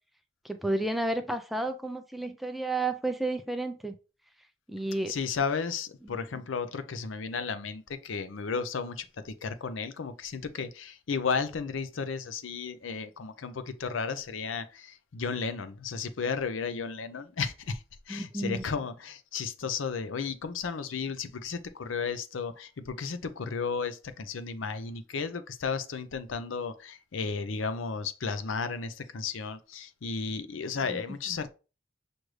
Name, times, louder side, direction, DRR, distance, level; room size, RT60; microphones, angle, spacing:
voice 1, 0.4-3.9 4.7-5.1 18.1-18.7 30.9-31.0, right 2 dB, ahead, 0.3 m, -31 dB
voice 2, 5.1-31.5, left 5 dB, 80° left, 0.5 m, -34 dB
6.2 x 2.6 x 3.1 m
head